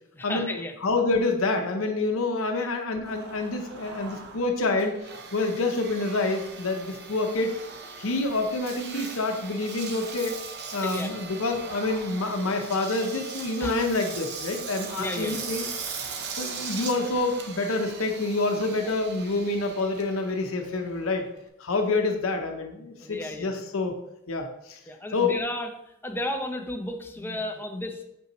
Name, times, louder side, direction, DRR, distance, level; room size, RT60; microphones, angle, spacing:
voice 1, 0.1-0.8 2.6-2.7 10.8-11.1 13.6-13.7 15.0-15.5 23.0-23.5 24.9-25.7 26.0-28.0, left 1 dB, 10° left, 4 dB, 0.5 m, -33 dB
voice 2, 0.8-5.0 5.3-7.5 8.0-10.4 10.7-15.7 16.4-21.2 21.6-23.9 24.3-24.8 25.1-25.4 27.3-27.4 27.7-27.8, left 3 dB, 75° left, 4 dB, 0.7 m, -27 dB
Engine, 3.1-21.5, right 5 dB, 50° right, 0.7 m, -39 dB
6.1 x 5.4 x 3.0 m, 0.82 s
head